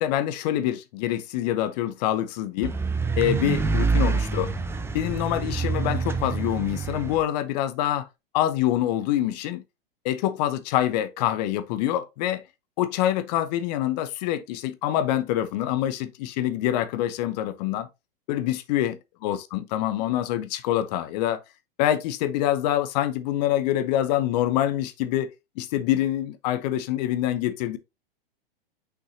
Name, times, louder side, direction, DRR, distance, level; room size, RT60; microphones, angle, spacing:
voice 1, 0.0-2.7 3.2-4.5 4.9-8.1 8.3-9.6 10.0-12.4 12.8-17.9 18.3-21.4 21.8-27.8, left 12 dB, 45° left, 0.8 m, -25 dB
sound 1, 2.6-7.2, right 4 dB, 10° right, 0.8 m, -26 dB
6.1 x 5.6 x 2.7 m
figure-of-eight pair, 100°, 30 cm